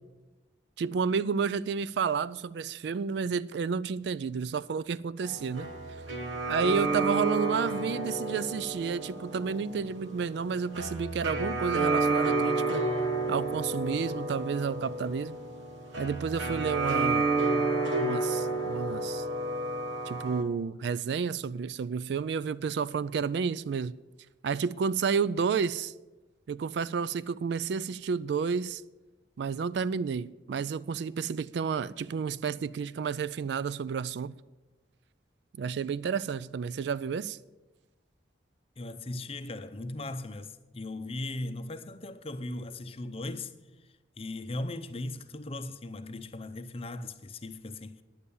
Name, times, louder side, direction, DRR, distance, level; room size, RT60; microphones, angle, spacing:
voice 1, 0.8-5.7 6.5-12.8 13.3-15.4 16.0-17.3 18.0-19.2 20.1-24.0 24.4-25.9 26.5-28.8 29.4-34.3 35.6-37.4, right 6 dB, 65° right, 0.3 m, -31 dB
sound 1, 5.2-20.4, right 3 dB, 90° right, 1.2 m, -30 dB
voice 2, 38.8-43.5 44.2-48.0, left 2 dB, 30° left, 0.6 m, -38 dB
10.5 x 8.4 x 7.0 m
head